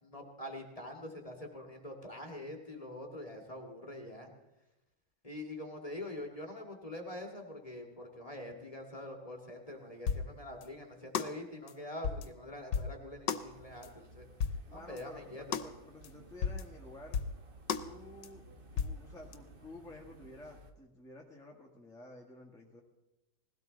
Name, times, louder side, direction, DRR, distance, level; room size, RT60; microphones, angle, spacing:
voice 1, 0.0-4.3 5.2-14.3 14.7-15.4, left 1 dB, 20° left, 2 dB, 2.0 m, -45 dB
sound 1, 10.1-10.3 10.6-10.7 11.1-11.3 11.7-11.8 12.0-12.3 12.7-12.9 13.3-13.4 13.8-13.9 14.4-14.6 15.0-15.1 15.5-15.7 16.0-16.1 16.4-16.6 17.1-17.4 17.7-17.9 18.2-18.3 18.8-19.0 19.3-19.4, left 7 dB, 75° left, 1.5 m, -33 dB
sound 2, 13.4-20.7, right 2 dB, 35° right, 1.3 m, -56 dB
voice 2, 14.4-17.2 17.8-18.4 18.7-22.8, left 2 dB, ahead, -1 dB, 1.5 m, -52 dB
20.0 x 16.5 x 4.0 m, 0.97 s
omnidirectional pair, 1.9 m